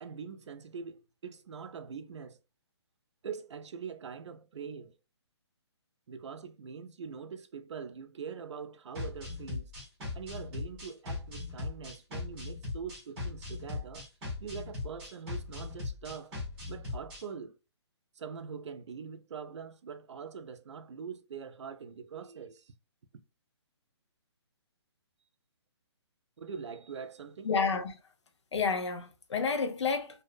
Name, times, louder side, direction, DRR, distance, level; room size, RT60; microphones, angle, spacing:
voice 1, 0.0-2.4 3.2-4.9 6.1-9.7 10.1-14.1 14.4-16.3 16.7-17.5 18.2-22.7 26.4-27.5, right 6 dB, 80° right, 0.4 m, -43 dB
sound 1, 8.9-17.2, left 3 dB, 5° right, 0.6 m, -39 dB
voice 2, 27.4-28.0 28.5-30.2, left 5 dB, 85° left, 0.6 m, -30 dB
2.6 x 2.0 x 2.4 m
hypercardioid pair, 175°, 15 cm